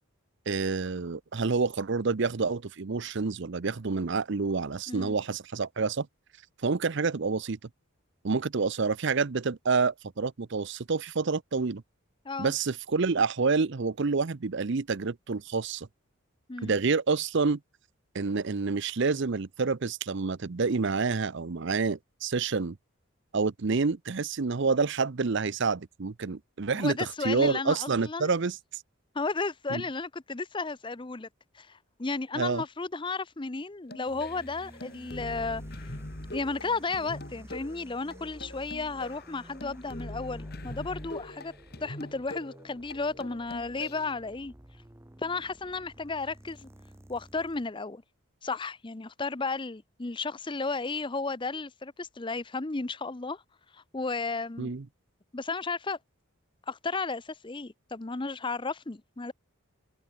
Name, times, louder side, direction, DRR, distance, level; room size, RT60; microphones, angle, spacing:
voice 1, 0.5-6.1 6.6-7.6 8.2-11.8 12.4-15.9 16.6-17.6 18.1-22.8 23.3-28.6 29.7-29.8 32.3-32.6 54.6-54.8, right 4 dB, 55° right, 0.6 m, -28 dB
voice 2, 26.7-28.3 29.1-31.3 31.5-35.6 36.3-41.5 41.8-44.5 45.2-46.7 47.1-48.0 48.4-53.4 53.7-54.7 55.3-56.0 56.7-59.3, left 3 dB, 20° left, 0.6 m, -33 dB
sound 1, 33.8-44.1, left 1 dB, 45° left, 2.5 m, -43 dB
sound 2, 34.0-47.7, right 1 dB, 10° right, 0.9 m, -52 dB
open air
head